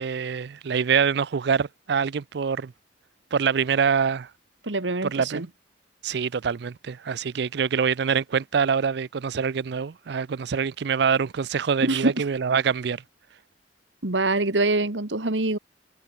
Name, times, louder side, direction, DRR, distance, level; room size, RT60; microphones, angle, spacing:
voice 1, 0.0-2.7 3.3-4.3 5.0-5.5 6.0-13.0, right 6 dB, 65° right, 0.4 m, -25 dB
voice 2, 4.6-5.5 11.8-12.2 14.0-15.6, right 2 dB, 85° right, 2.1 m, -24 dB
head